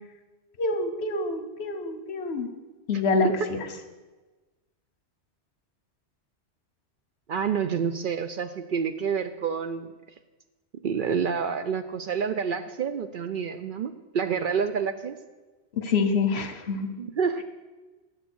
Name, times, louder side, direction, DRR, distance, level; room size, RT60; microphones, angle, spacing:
voice 1, 0.6-2.5 2.9-3.6 15.7-16.9, left 3 dB, 70° left, 8 dB, 1.2 m, -26 dB
voice 2, 2.9-3.3 7.3-9.9 10.8-15.2 17.0-17.4, right 6 dB, 60° right, 10 dB, 0.6 m, -28 dB
9.6 x 7.6 x 6.2 m, 1.2 s
omnidirectional pair, 1.1 m